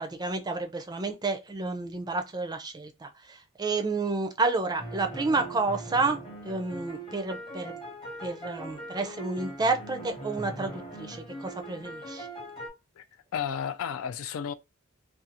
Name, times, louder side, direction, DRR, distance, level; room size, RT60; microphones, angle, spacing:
voice 1, 0.0-6.2 6.4-7.8 8.2-12.3, right 3 dB, 20° right, 0.4 m, -30 dB
sound 1, 4.8-12.7, right 1 dB, 25° left, 0.7 m, -41 dB
voice 2, 13.3-14.5, left 8 dB, 75° left, 0.3 m, -32 dB
2.5 x 2.3 x 2.8 m
head